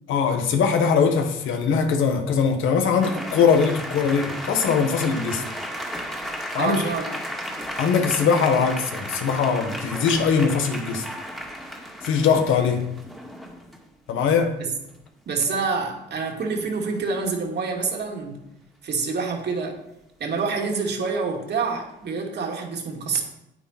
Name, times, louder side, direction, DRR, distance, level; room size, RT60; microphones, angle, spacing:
voice 1, 0.1-5.4 6.5-6.9 7.8-11.1 12.0-12.8 14.1-14.6, left 6 dB, 80° left, 1.5 m, -21 dB
sound 1, 3.0-13.8 15.7-15.8 16.1-16.4 20.4-20.6, equal, ahead, 2.0 m, -34 dB
voice 2, 6.5-7.1 15.3-18.4 18.8-19.8 20.2-23.2, right 4 dB, 60° right, 2.5 m, -27 dB
9.1 x 8.9 x 4.4 m
cardioid pair, 90°, 20 cm